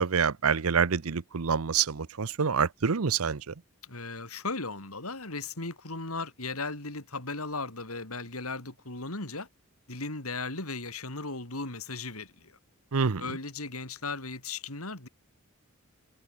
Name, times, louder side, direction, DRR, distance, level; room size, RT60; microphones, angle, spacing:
voice 1, 0.0-3.5 12.9-13.2, right 6 dB, 80° right, 0.8 m, -27 dB
voice 2, 3.8-9.5 9.9-12.5 13.2-15.1, left 3 dB, 80° left, 5.1 m, -36 dB
head